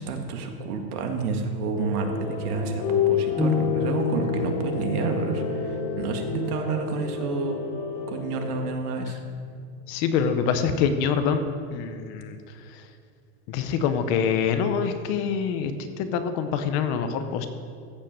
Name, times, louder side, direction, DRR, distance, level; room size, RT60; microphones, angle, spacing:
voice 1, 0.0-7.6 8.1-9.2, right 4 dB, 85° right, 4 dB, 1.9 m, -29 dB
sound 1, 1.8-8.7, left 8 dB, 65° left, 2.8 m, -30 dB
Piano, 3.4-10.1, left 3 dB, ahead, 0.6 m, -32 dB
voice 2, 9.9-12.8 13.5-17.5, left 6 dB, 35° left, 9 dB, 0.7 m, -25 dB
15.0 x 5.5 x 7.4 m, 2.3 s
supercardioid pair, 170°, 44 cm